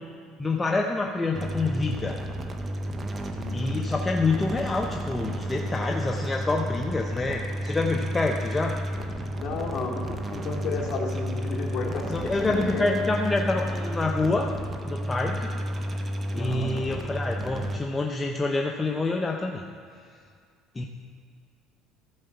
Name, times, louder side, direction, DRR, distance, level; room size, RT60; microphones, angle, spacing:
voice 1, 0.4-2.2 3.5-8.8 12.1-14.5 14.8-15.5 16.4-19.6 20.8-20.9, left 3 dB, 15° left, 1 dB, 0.6 m, -27 dB
sound 1, 1.3-17.8, equal, 25° right, 0.9 m, -32 dB
voice 2, 3.3-3.8 9.4-13.1 16.3-16.8, left 4 dB, 45° left, -2 dB, 2.2 m, -33 dB
13.5 x 4.9 x 6.9 m, 2.2 s
cardioid pair, 120°, 0 cm